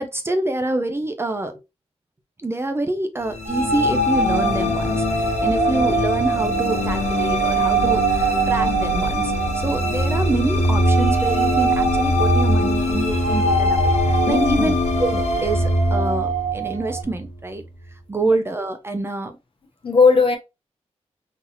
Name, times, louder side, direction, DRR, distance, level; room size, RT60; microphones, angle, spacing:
voice 1, 0.0-1.5 2.4-14.7 15.0-17.6 18.1-19.3, right 2 dB, 20° right, 0.5 m, -26 dB
sound 1, 3.2-17.6, left 1 dB, 80° left, 1.2 m, -23 dB
sound 2, 3.5-10.4 10.7-17.0, right 4 dB, 80° right, 1.4 m, -24 dB
voice 2, 14.3-14.7 18.2-18.3 19.8-20.4, left 4 dB, 50° left, 1.0 m, -17 dB
3.9 x 2.8 x 2.9 m
wide cardioid pair, 125°, 11 cm